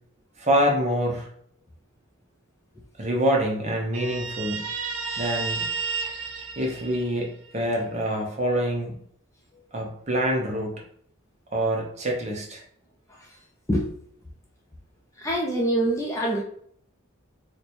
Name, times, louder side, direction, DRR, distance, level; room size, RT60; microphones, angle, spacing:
voice 1, 0.4-1.3 3.0-4.6 5.2-5.7 6.6-7.3 7.5-8.9 9.7-10.7 11.5-12.6, equal, 35° right, 0 dB, 0.7 m, -25 dB
Guitar, 3.9-7.5, right 5 dB, 80° right, 0.6 m, -32 dB
voice 2, 15.2-16.4, right 1 dB, 15° left, -2 dB, 0.5 m, -24 dB
3.1 x 2.2 x 4.1 m, 0.65 s
head